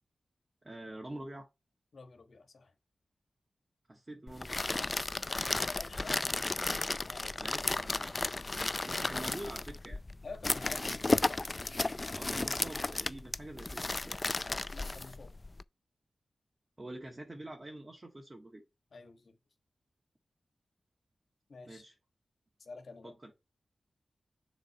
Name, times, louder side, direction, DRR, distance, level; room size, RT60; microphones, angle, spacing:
voice 1, 0.6-1.5 3.9-5.0 7.4-8.6 8.8-10.0 12.1-14.4 16.8-18.6 21.7-21.9 23.0-23.3, right 1 dB, 35° right, 1.9 m, -46 dB
voice 2, 1.9-2.7 5.4-7.4 8.7-8.8 10.2-11.4 14.7-15.3 18.9-19.4 21.5-21.8 22.6-23.1, left 3 dB, 75° left, 1.5 m, -49 dB
sound 1, 4.3-15.6, left 2 dB, 40° left, 0.4 m, -34 dB
6.7 x 3.9 x 4.3 m
cardioid pair, 45°, 0 cm